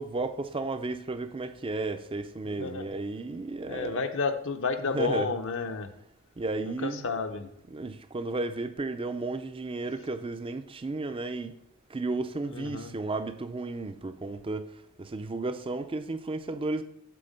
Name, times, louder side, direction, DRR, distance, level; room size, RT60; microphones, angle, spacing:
voice 1, 0.0-4.0 4.9-5.3 6.4-7.1 7.7-11.5 11.9-14.7 15.0-16.8, right 3 dB, 25° right, 0.4 m, -33 dB
voice 2, 2.4-2.9 3.7-5.9 6.6-7.5 12.5-13.0, left 4 dB, 60° left, 0.7 m, -31 dB
7.7 x 4.0 x 5.2 m
head